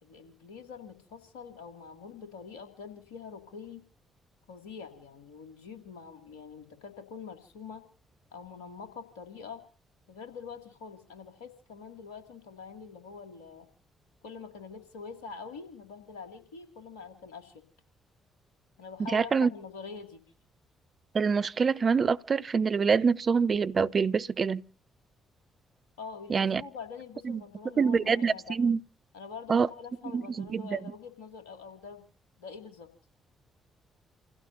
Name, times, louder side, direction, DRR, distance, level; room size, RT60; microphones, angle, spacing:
voice 1, 0.0-3.8 4.5-7.8 8.3-9.6 10.1-13.7 14.2-17.6 18.8-20.2 26.0-28.6 29.1-32.0 32.4-32.9, left 5 dB, 80° left, 2.4 m, -45 dB
voice 2, 19.1-19.5 21.1-24.6 26.3-26.6 27.2-27.4 27.8-28.8 29.5-29.7 30.1-30.8, right 5 dB, 45° right, 0.7 m, -25 dB
29.0 x 16.0 x 2.7 m
figure-of-eight pair, 40°, 0 cm